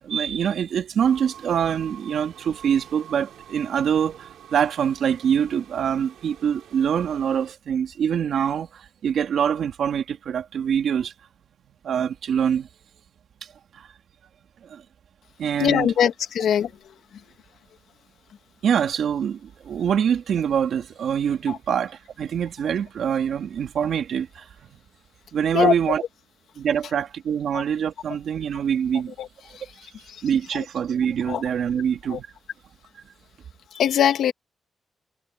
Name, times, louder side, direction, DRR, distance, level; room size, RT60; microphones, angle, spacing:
voice 1, 0.0-11.1 11.8-12.7 13.7-13.9 14.6-14.8 15.4-15.9 18.6-24.5 25.3-26.0 26.6-29.1 30.2-32.3, right 8 dB, 65° right, 2.9 m, -24 dB
sound 1, 1.0-7.5, right 10 dB, 80° right, 7.2 m, -46 dB
voice 2, 15.6-16.7 21.5-21.6 25.5-25.7 27.5-27.6 29.2-29.3 31.3-31.4 32.1-32.2 33.8-34.3, left 9 dB, 80° left, 2.2 m, -21 dB
wide cardioid pair, 160°, 0 cm